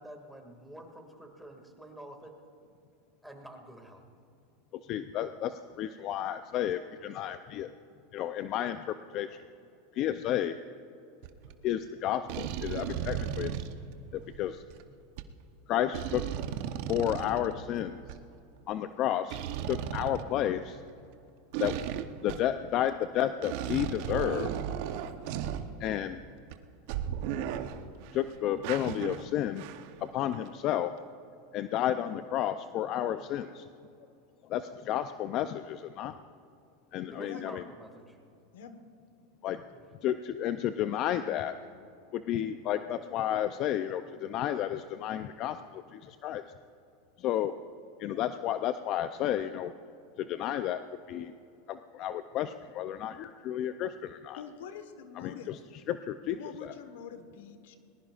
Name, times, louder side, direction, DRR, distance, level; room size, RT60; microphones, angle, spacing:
voice 1, 0.0-2.4 3.2-4.0 37.1-38.2 39.7-39.8, right 1 dB, 5° right, 3 dB, 2.2 m, -48 dB
voice 2, 4.7-7.7 8.1-9.4 9.9-10.6 11.6-13.7 14.1-14.6 15.7-16.3 16.9-18.0 18.7-19.4 19.7-20.8 21.6-21.8 22.2-24.5 25.8-26.2 28.1-29.7 30.0-31.0 31.5-33.7 34.4-36.2 36.9-37.6 39.4-39.6 40.0-41.5 42.1-46.4 47.2-47.6 48.0-49.7 50.2-51.3 51.7-54.4 55.2-55.6 55.9-56.7, left 11 dB, 45° left, 10 dB, 0.5 m, -32 dB
sound 1, 11.2-11.5 12.3-14.8 15.2-15.3 15.9-18.2 19.3-20.9 21.5-22.6 23.0-23.1 23.4-26.1 26.5-26.6 26.9-28.2 28.6-30.1 30.3-30.5, right 9 dB, 60° right, 0.8 m, -36 dB
voice 3, 54.3-55.5 56.2-57.8, left 7 dB, 80° left, 9 dB, 1.2 m, -45 dB
20.5 x 20.0 x 2.5 m, 2.5 s
supercardioid pair, 120°, 0 cm